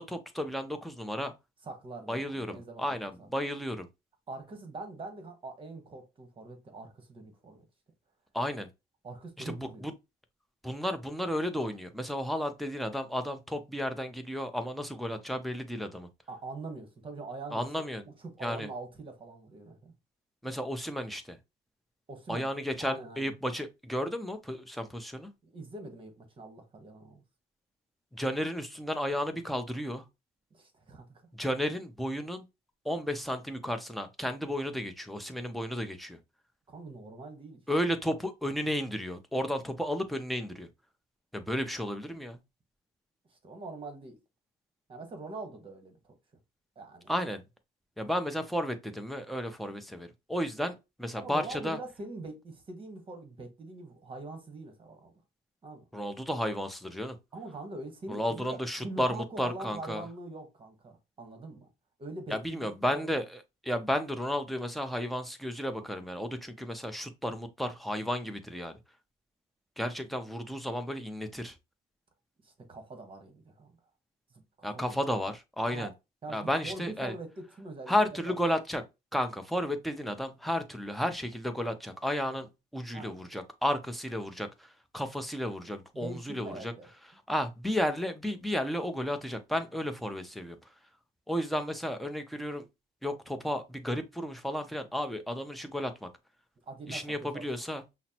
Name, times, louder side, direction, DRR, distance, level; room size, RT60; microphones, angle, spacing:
voice 1, 0.0-1.3 2.1-3.9 8.3-8.7 9.4-9.5 9.8-9.9 10.6-16.1 17.5-18.0 18.4-18.7 20.4-21.4 22.3-25.3 28.1-30.0 31.4-32.4 32.8-36.2 37.7-40.7 41.3-42.4 47.1-47.4 48.0-51.8 55.9-57.2 58.1-60.0 62.3-68.8 69.8-71.5 74.6-75.9 76.3-77.1 77.9-78.8 79.1-84.7 84.9-86.7 87.3-90.6 91.3-92.6 93.0-96.1 96.9-98.0, equal, ahead, 0.7 m, -33 dB
voice 2, 1.6-2.8 3.2-3.3 4.3-7.7 9.0-9.9 16.3-17.7 18.2-19.9 22.1-22.5 22.8-23.3 25.4-27.2 30.5-31.2 36.7-37.6 43.3-44.2 44.9-46.1 46.7-47.1 51.2-55.1 55.6-55.8 57.3-58.6 58.8-61.7 62.0-63.1 72.4-73.8 74.6-75.3 75.6-75.9 76.2-78.3 82.9-83.2 85.9-86.9 96.7-97.4, right 3 dB, 30° right, 1.3 m, -43 dB
5.7 x 2.1 x 2.9 m
cardioid pair, 110°, 17 cm